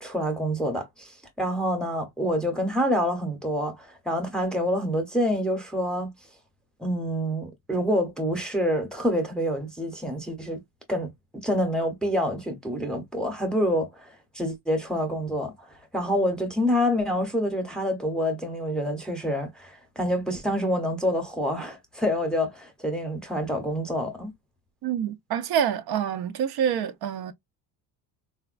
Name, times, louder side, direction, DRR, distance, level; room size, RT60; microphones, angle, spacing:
voice 1, 0.0-6.1 6.8-10.6 10.9-11.1 11.4-14.1 14.3-15.5 15.9-24.3, equal, ahead, 0.7 m, -27 dB
voice 2, 24.8-27.3, right 9 dB, 60° right, 0.5 m, -27 dB
4.0 x 2.2 x 2.4 m
cardioid pair, 175°, 43 cm